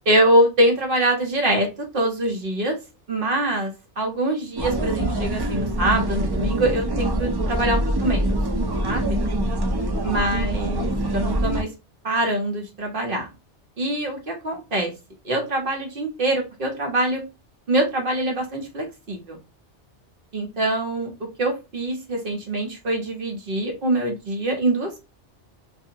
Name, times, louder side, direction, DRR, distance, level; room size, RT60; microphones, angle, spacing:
voice 1, 0.1-1.7 1.9-2.8 3.1-8.4 8.8-9.2 10.0-11.7 12.0-13.3 13.8-14.9 15.2-17.2 17.7-19.4 20.3-21.1 21.4-25.1, right 1 dB, 55° right, 1 dB, 1.0 m, -24 dB
sound 1, 4.6-11.6, right 1 dB, 35° right, 0.3 m, -24 dB
2.7 x 2.6 x 2.7 m, 0.27 s
omnidirectional pair, 1.2 m